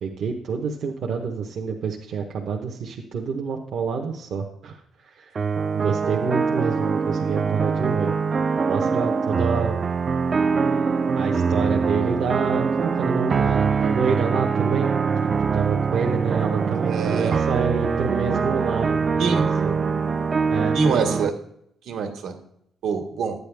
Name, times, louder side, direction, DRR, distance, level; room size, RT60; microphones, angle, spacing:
voice 1, 0.0-4.8 5.1-5.4 5.7-8.1 8.7-9.8 11.2-14.9 15.2-19.8 20.5-20.8, right 5 dB, 55° right, 1 dB, 0.9 m, -27 dB
sound 1, 5.4-21.3, right 5 dB, 30° right, 0.3 m, -23 dB
voice 2, 16.9-17.4 19.2-19.5 20.7-21.3 21.8-22.3 22.8-23.3, right 5 dB, 75° right, 4 dB, 1.8 m, -25 dB
12.0 x 9.4 x 3.4 m, 0.74 s
cardioid pair, 175°, 0 cm